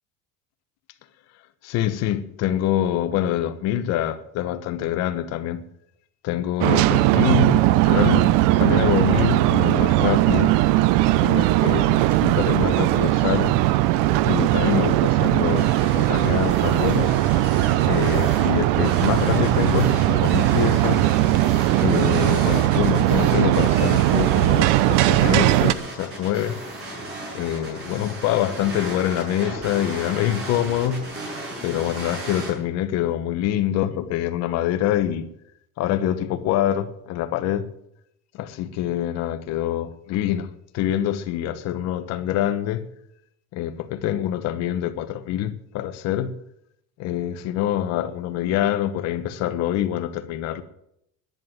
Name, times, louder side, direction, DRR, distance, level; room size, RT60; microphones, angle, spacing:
voice 1, 1.6-5.6 6.2-10.6 11.2-13.6 14.2-17.2 17.9-21.1 21.8-26.6 27.3-31.1 31.6-35.3 35.8-37.7 38.3-42.8 43.5-46.3 47.0-50.6, left 11 dB, 50° left, 1.2 m, -25 dB
sound 1, 6.6-25.7, right 16 dB, 75° right, 0.8 m, -19 dB
sound 2, 15.3-32.5, right 1 dB, 40° right, 7.3 m, -35 dB
11.0 x 10.5 x 9.4 m
cardioid pair, 175°, 32 cm